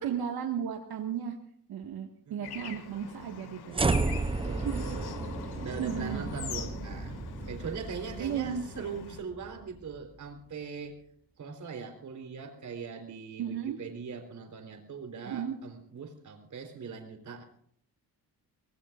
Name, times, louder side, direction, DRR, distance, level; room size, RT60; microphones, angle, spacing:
voice 1, 0.0-1.4 1.7-3.9 4.5-5.0 5.4-6.2 8.2-8.7 13.4-13.8 15.3-15.6, right 8 dB, 75° right, 2 dB, 1.8 m, -35 dB
voice 2, 2.3-2.7 4.1-11.0 11.4-17.4, right 5 dB, 50° right, 4 dB, 3.9 m, -41 dB
Bird / Traffic noise roadway noise, 2.4-9.2, left 7 dB, 80° left, 2.1 m, -43 dB
sound 1, 3.7-10.0, right 3 dB, 15° right, 0.6 m, -33 dB
25.0 x 19.0 x 2.5 m, 0.63 s
cardioid pair, 140°, 38 cm